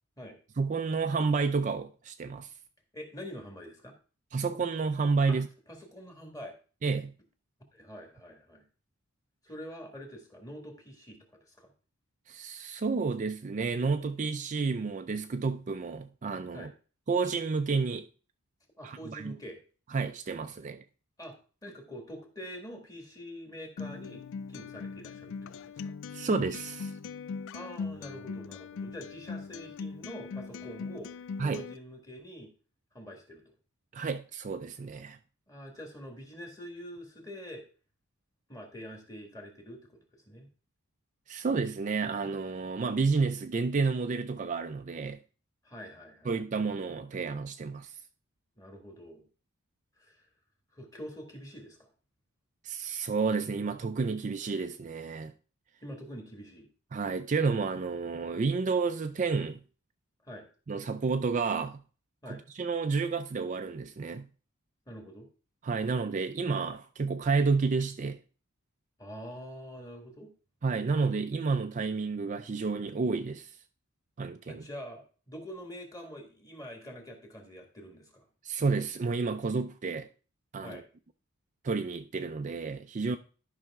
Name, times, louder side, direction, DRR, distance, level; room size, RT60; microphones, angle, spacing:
voice 1, 0.6-2.5 4.3-5.5 6.8-7.1 12.3-16.7 17.1-18.1 18.8-19.3 19.9-20.8 26.1-26.9 31.4-31.6 33.9-35.2 41.3-45.2 46.3-48.0 52.6-55.3 56.9-59.6 60.7-61.8 62.3-64.3 65.6-68.2 70.6-73.5 74.2-74.7 78.4-80.1 80.5-80.8 81.6-83.2, right 4 dB, 35° right, 0.4 m, -30 dB
voice 2, 2.9-3.9 5.3-5.4 5.7-6.5 7.7-8.6 9.4-11.7 16.5-16.7 18.8-19.6 21.2-21.3 21.6-24.2 24.5-25.9 27.5-32.5 32.9-33.4 35.5-37.6 38.5-40.5 45.6-46.3 48.6-49.2 50.0-50.3 50.7-51.9 55.8-56.7 60.2-60.5 62.2-62.4 64.9-65.3 69.0-70.3 74.5-78.3 80.6-80.8, equal, 15° left, 1.8 m, -45 dB
Acoustic guitar, 23.8-31.8, left 5 dB, 60° left, 0.3 m, -40 dB
12.0 x 5.6 x 3.6 m
head